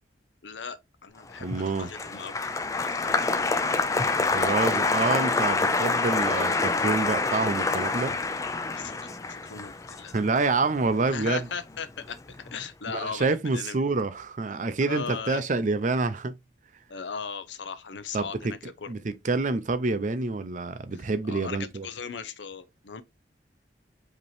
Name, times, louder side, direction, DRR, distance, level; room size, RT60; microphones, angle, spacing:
voice 1, 0.4-2.3 2.7-3.5 8.7-10.1 11.1-13.8 14.8-15.4 16.9-18.9 20.9-23.0, left 6 dB, 80° left, 0.7 m, -38 dB
Applause, 1.4-11.8 12.0-12.6, left 3 dB, 20° left, 0.4 m, -27 dB
voice 2, 1.4-1.9 4.3-8.1 10.1-11.4 12.9-16.3 18.1-21.9, right 3 dB, 45° right, 0.5 m, -27 dB
5.1 x 2.9 x 3.3 m
head